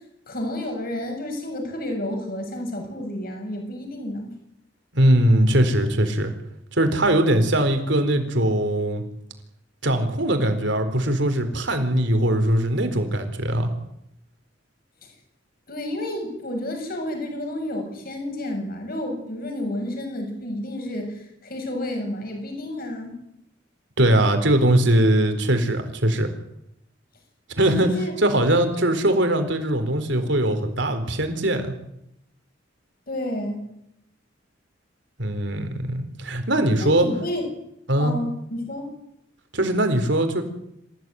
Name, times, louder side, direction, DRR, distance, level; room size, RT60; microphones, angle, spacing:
voice 1, 0.3-4.3 15.0-15.1 15.7-23.2 27.6-28.1 33.1-33.7 36.8-37.4 38.0-38.9, left 1 dB, 50° left, 4 dB, 7.0 m, -30 dB
voice 2, 4.9-6.3 6.7-9.0 9.8-13.7 24.0-26.3 27.6-27.9 28.2-31.7 35.2-37.1 37.9-38.1 39.5-40.4, right 1 dB, 70° right, 7 dB, 4.3 m, -21 dB
27.0 x 15.5 x 9.5 m, 0.79 s
head